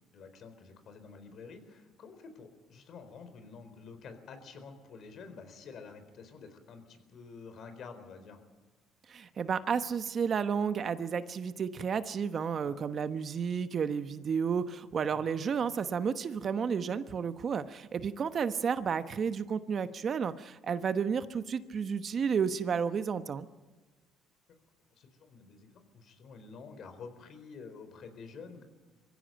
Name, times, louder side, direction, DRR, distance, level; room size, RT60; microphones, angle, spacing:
voice 1, 0.0-8.4 12.6-12.8 15.1-15.2 25.0-28.6, left 5 dB, 55° left, 9 dB, 4.1 m, -49 dB
voice 2, 9.1-23.5, right 6 dB, 45° right, 11 dB, 1.0 m, -32 dB
23.0 x 15.5 x 9.1 m, 1.3 s
cardioid pair, 100°, 0 cm